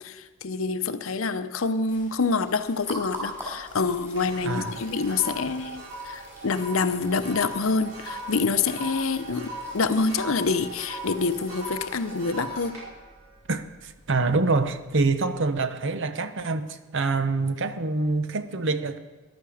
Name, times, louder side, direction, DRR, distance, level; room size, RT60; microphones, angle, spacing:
voice 1, 0.0-12.8, left 4 dB, 65° left, 0.7 m, -26 dB
sound 1, 1.8-12.4, equal, 10° right, 4.7 m, -44 dB
sound 2, 3.2-3.4 3.8-14.3 14.8-15.1, right 1 dB, 75° right, 5.1 m, -39 dB
voice 2, 4.4-4.8 13.5-16.7 16.9-19.0, right 3 dB, 60° right, 0.9 m, -25 dB
14.5 x 11.5 x 4.9 m
head